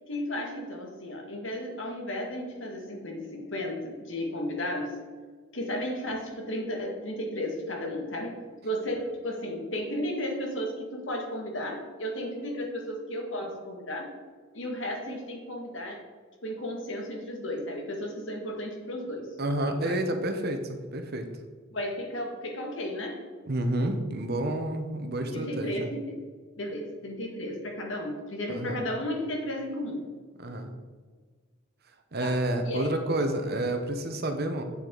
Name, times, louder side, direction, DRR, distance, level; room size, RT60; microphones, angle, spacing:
voice 1, 0.0-5.0 5.5-14.1 14.5-16.0 16.4-19.3 19.8-20.0 21.7-23.2 25.3-26.2 26.6-30.1 32.2-32.4 32.6-33.0, left 1 dB, 65° left, 1 dB, 2.0 m, -34 dB
voice 2, 19.4-21.3 23.5-25.9 28.5-28.8 30.4-30.7 32.1-34.6, right 1 dB, 50° right, 6 dB, 1.0 m, -29 dB
8.6 x 7.6 x 4.0 m, 1.5 s
head